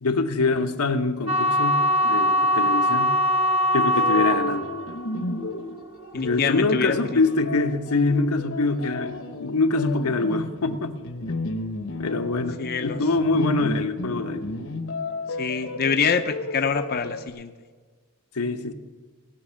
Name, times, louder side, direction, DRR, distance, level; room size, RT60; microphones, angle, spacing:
voice 1, 0.0-1.8 2.0-3.1 3.7-4.7 6.1-11.0 11.3-11.4 12.0-14.4 18.3-18.7, left 3 dB, 85° left, 6 dB, 1.0 m, -24 dB
sound 1, 1.3-7.4, equal, 30° right, 1.2 m, -23 dB
sound 2, 3.9-17.3, left 2 dB, 60° left, 0.9 m, -33 dB
voice 2, 6.1-7.2 12.6-13.0 15.4-17.5, left 6 dB, 45° left, 7 dB, 0.6 m, -25 dB
18.0 x 6.0 x 8.5 m, 1.5 s
head